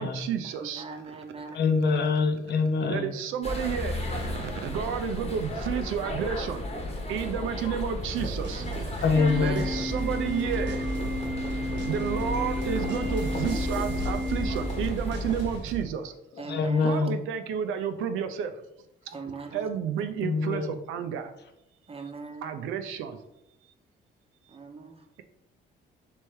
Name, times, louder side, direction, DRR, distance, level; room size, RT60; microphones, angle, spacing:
voice 1, 0.0-1.2 1.5-1.6 2.9-6.6 7.1-8.6 9.4-10.8 11.9-16.1 16.8-18.5 19.1-19.2 19.5-21.3 22.4-23.2, right 8 dB, 90° right, 8 dB, 0.5 m, -31 dB
voice 2, 0.6-1.6 1.9-2.1 7.6-7.7 9.1-9.8 16.4-17.0 19.1-19.7 21.9-22.5 24.5-25.0, right 4 dB, 30° right, 4 dB, 0.7 m, -40 dB
voice 3, 1.5-3.1 9.0-9.6 16.5-17.2 20.2-20.8, left 4 dB, 60° left, 6 dB, 0.7 m, -25 dB
sound 1, 3.4-15.6, left 1 dB, 30° left, 1.0 m, -33 dB
sound 2, 8.1-15.8, right 5 dB, 70° right, 1.0 m, -39 dB
Organ, 9.2-15.2, left 1 dB, ahead, 0.8 m, -33 dB
3.4 x 3.1 x 4.5 m, 0.86 s
cardioid pair, 90°, 20 cm